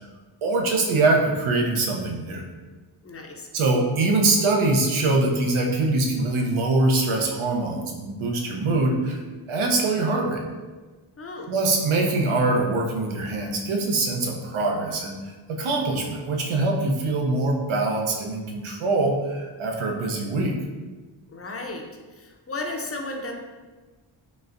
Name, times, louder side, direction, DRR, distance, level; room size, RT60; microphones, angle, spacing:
voice 1, 0.4-2.4 3.5-9.2 9.5-10.4 11.5-15.1 15.5-20.6, right 2 dB, 75° right, 0 dB, 0.8 m, -23 dB
voice 2, 3.0-3.5 11.2-11.5 21.3-21.8 22.1-23.3, left 2 dB, 30° left, 2 dB, 0.6 m, -34 dB
4.1 x 3.3 x 2.5 m, 1.3 s
cardioid pair, 70°, 49 cm